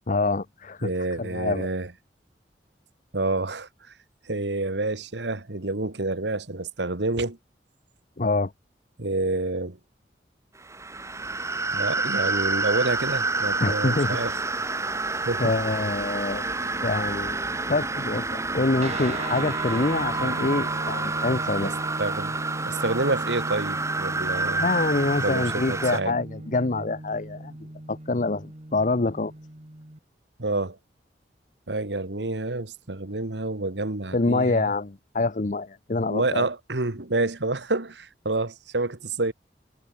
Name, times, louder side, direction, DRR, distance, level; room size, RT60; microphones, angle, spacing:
voice 1, 0.1-0.9 1.2-1.7 8.2-8.5 13.6-14.2 15.4-16.4 16.8-17.4 17.7-21.8 24.6-27.5 27.9-29.3 34.1-36.5, left 3 dB, 45° left, 0.8 m, -26 dB
voice 2, 0.8-1.9 3.1-3.9 4.3-7.4 9.0-9.8 11.7-14.3 15.3-15.5 21.6-21.7 22.0-22.4 22.6-24.7 25.2-26.2 26.7-26.8 30.4-30.8 31.7-34.7 36.1-39.3, right 2 dB, 85° right, 1.8 m, -28 dB
sound 1, 10.6-26.0, right 3 dB, 15° right, 1.9 m, -28 dB
sound 2, 18.8-30.0, right 2 dB, 40° right, 2.0 m, -37 dB
head